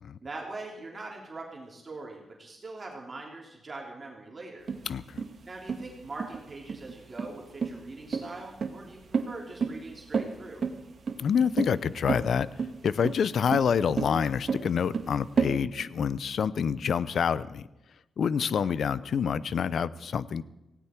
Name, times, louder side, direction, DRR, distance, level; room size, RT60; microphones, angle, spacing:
voice 1, 0.2-4.7 5.5-10.6 18.4-18.9, right 2 dB, 35° right, -1 dB, 3.3 m, -42 dB
sound 1, 4.7-15.5, right 5 dB, 55° right, 1.5 m, -31 dB
voice 2, 4.9-5.2 11.2-17.7 18.2-20.4, left 7 dB, 65° left, 18 dB, 0.6 m, -27 dB
18.0 x 16.5 x 4.6 m, 0.98 s
cardioid pair, 95°, 0 cm